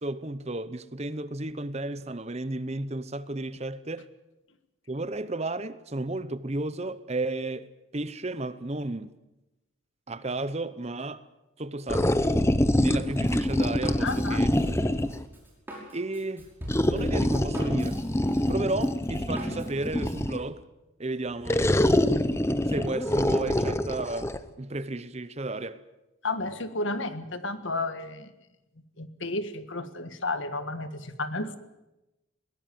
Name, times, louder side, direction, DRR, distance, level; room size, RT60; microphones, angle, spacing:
voice 1, 0.0-4.1 4.9-9.2 10.1-11.2 11.6-12.1 12.8-14.5 15.9-16.5 16.8-18.0 18.5-20.6 21.0-21.7 22.7-25.8, right 2 dB, 30° right, 0.8 m, -33 dB
sound 1, 11.9-15.3 16.7-20.5 21.5-24.4, left 1 dB, 15° left, 0.8 m, -25 dB
Drum kit, 12.9-20.2, equal, 10° right, 5.8 m, -43 dB
voice 2, 14.0-14.4 26.2-28.3 29.0-31.6, left 2 dB, 65° left, 1.7 m, -32 dB
22.0 x 17.5 x 9.3 m
head